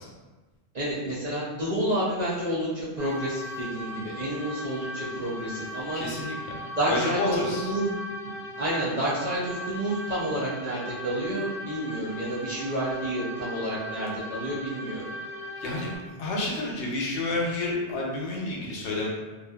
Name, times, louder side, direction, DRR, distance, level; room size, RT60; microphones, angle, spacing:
voice 1, 0.7-6.0 6.8-7.9 8.2-8.3 8.6-15.1, right 1 dB, 55° right, -9 dB, 0.5 m, -29 dB
sound 1, 3.0-16.0, equal, ahead, 0.8 m, -38 dB
voice 2, 5.9-6.5 6.9-7.7 15.6-15.9 16.2-19.1, left 2 dB, 75° left, -3 dB, 0.9 m, -29 dB
2.5 x 2.5 x 2.2 m, 1.2 s
omnidirectional pair, 1.2 m